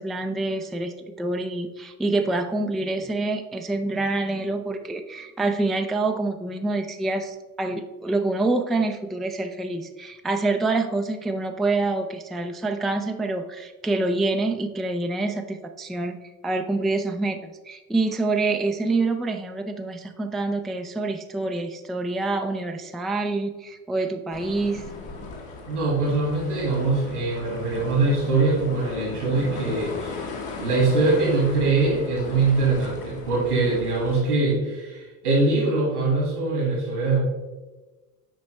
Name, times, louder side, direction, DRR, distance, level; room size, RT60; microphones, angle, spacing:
voice 1, 0.0-16.2 16.4-24.8, right 2 dB, ahead, 5 dB, 0.3 m, -26 dB
sound 1, 24.3-34.2, left 4 dB, 55° left, 1.6 m, -37 dB
voice 2, 25.7-30.2 30.6-37.2, right 3 dB, 90° right, -5 dB, 2.1 m, -23 dB
7.3 x 5.2 x 3.2 m, 1.2 s
hypercardioid pair, 65°, 44 cm